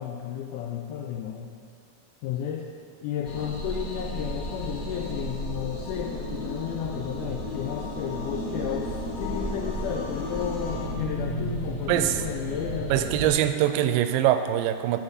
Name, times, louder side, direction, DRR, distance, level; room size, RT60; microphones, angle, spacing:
voice 1, 0.0-1.6 2.2-2.7 3.0-13.1, left 8 dB, 85° left, 2 dB, 1.9 m, -33 dB
sound 1, 3.2-13.3, left 1 dB, 50° left, 1.0 m, -33 dB
voice 2, 11.9-12.2 12.9-15.0, right 12 dB, 80° right, 9 dB, 2.1 m, -23 dB
12.5 x 4.7 x 8.1 m, 2.2 s
omnidirectional pair, 4.2 m